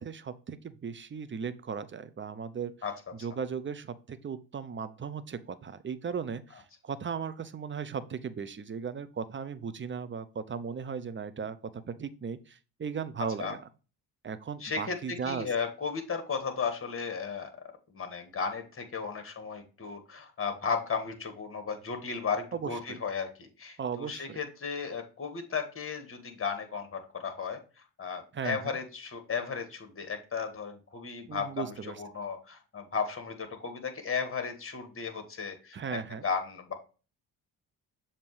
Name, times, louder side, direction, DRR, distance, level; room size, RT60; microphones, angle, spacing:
voice 1, 0.0-2.8 3.1-13.7 14.2-15.5 22.5-23.0 23.8-24.4 28.3-28.8 31.3-32.0 35.7-36.2, right 6 dB, 25° right, 14 dB, 0.6 m, -37 dB
voice 2, 14.6-15.0 15.2-17.5 17.9-27.6 28.0-35.8 36.2-36.7, left 5 dB, 30° left, 7 dB, 1.6 m, -35 dB
6.9 x 2.9 x 4.8 m, 0.34 s
hypercardioid pair, 55°, 44 cm